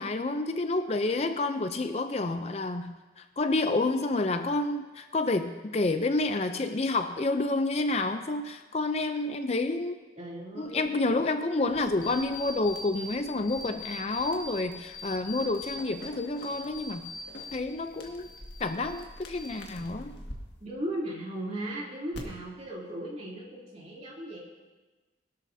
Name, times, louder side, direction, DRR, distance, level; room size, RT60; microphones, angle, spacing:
voice 1, 0.0-10.0 10.6-17.1 17.5-18.3 18.6-20.1, left 2 dB, 35° left, 8 dB, 0.5 m, -29 dB
voice 2, 10.2-10.9 20.6-24.4, right 1 dB, 35° right, -4 dB, 2.9 m, -37 dB
sound 1, 11.7-20.4 22.1-22.2, left 1 dB, 75° left, 1.8 m, -49 dB
sound 2, 12.0-13.2 13.5-14.6 14.9-17.6 17.9-19.0 19.3-19.9, left 2 dB, 55° left, 2.0 m, -42 dB
21.5 x 12.0 x 2.7 m, 1.2 s
head